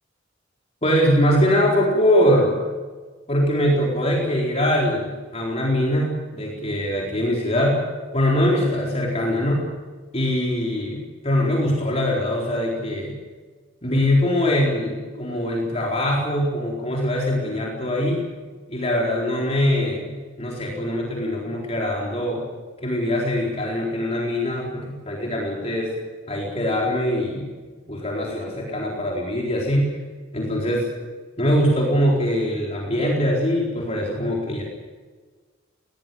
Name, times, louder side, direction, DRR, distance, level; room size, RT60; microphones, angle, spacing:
voice 1, 0.8-2.6 3.3-7.8 8.1-9.7 10.1-13.1 13.8-18.2 18.7-20.1 20.4-22.4 22.8-25.9 26.3-27.5 27.9-29.9 30.3-30.9 31.4-34.6, equal, 35° left, -2 dB, 4.2 m, -22 dB
21.0 x 18.0 x 9.1 m, 1.4 s
head